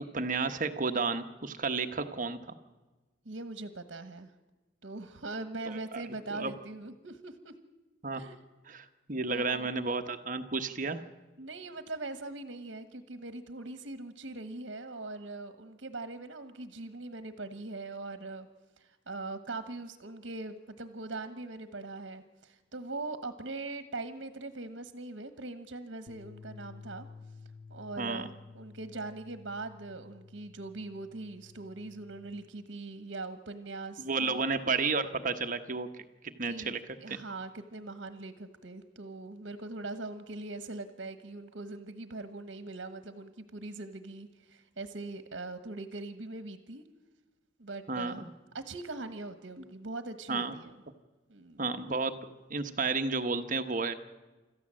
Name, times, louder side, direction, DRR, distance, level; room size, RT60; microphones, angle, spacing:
voice 1, 0.1-2.5 5.9-6.0 6.3-6.5 8.0-8.2 8.7-11.0 28.0-28.3 34.0-36.8 37.1-37.2 47.9-48.3 50.3-50.6 51.6-52.1 52.5-53.9, right 4 dB, 45° right, 8 dB, 1.1 m, -32 dB
voice 2, 3.2-4.3 4.8-7.5 8.1-8.4 9.3-9.7 11.4-18.5 18.8-27.1 27.7-34.4 36.4-36.7 37.0-46.8 47.6-48.3 48.5-50.7 51.3-51.6, right 2 dB, 70° right, 9 dB, 1.2 m, -41 dB
sound 1, 26.1-32.3, left 4 dB, 50° left, 1.7 m, -52 dB
26.0 x 14.0 x 7.6 m, 1.2 s
head